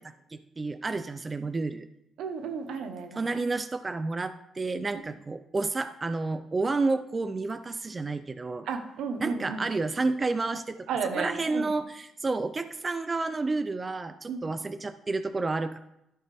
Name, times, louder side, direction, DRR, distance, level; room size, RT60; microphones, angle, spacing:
voice 1, 0.0-1.9 3.2-8.7 9.2-10.9 11.1-15.8, right 3 dB, 25° right, 11 dB, 0.4 m, -30 dB
voice 2, 2.2-3.2 4.9-5.0 8.6-9.7 10.9-11.7 14.3-14.5, right 5 dB, 80° right, 7 dB, 1.1 m, -33 dB
13.0 x 5.5 x 3.5 m, 0.84 s
cardioid pair, 90°, 0 cm